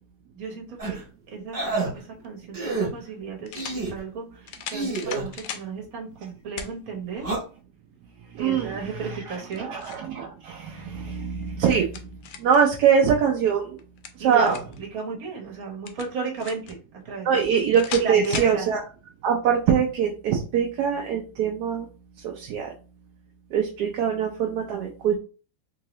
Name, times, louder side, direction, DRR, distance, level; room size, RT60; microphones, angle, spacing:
voice 1, 0.3-1.0 1.3-7.3 8.4-9.7 14.2-17.6 18.0-18.7, right 4 dB, 55° right, -1 dB, 1.4 m, -34 dB
sound 1, 0.8-1.0 1.5-1.9 2.5-2.9 3.5-4.0 4.7-5.3 7.2-7.4, right 3 dB, 35° right, 1.4 m, -28 dB
sound 2, 2.2-2.3 3.5-3.8 4.5-5.7 6.6-6.7 7.3-7.4 9.3-10.1 11.4-12.6 13.8-14.8 15.9-16.7 17.7-18.6, left 8 dB, 90° left, 1.3 m, -37 dB
voice 2, 8.3-8.8 9.7-11.9 12.4-13.8 14.2-14.6 17.3-18.8 19.2-21.9 22.2-22.7 23.5-25.2, right 7 dB, 70° right, 1 dB, 1.1 m, -23 dB
3.7 x 2.7 x 3.0 m, 0.36 s
omnidirectional pair, 2.0 m